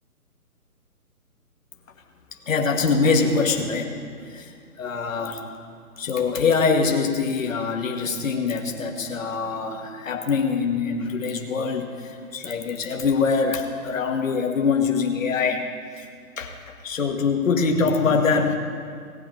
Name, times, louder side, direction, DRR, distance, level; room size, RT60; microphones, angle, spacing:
voice 1, 2.5-5.4 6.0-15.6 16.0-16.1 16.4-16.5 16.8-18.5, left 5 dB, 60° left, 3 dB, 1.3 m, -24 dB
18.0 x 10.0 x 3.0 m, 2.2 s
hypercardioid pair, 170°, 46 cm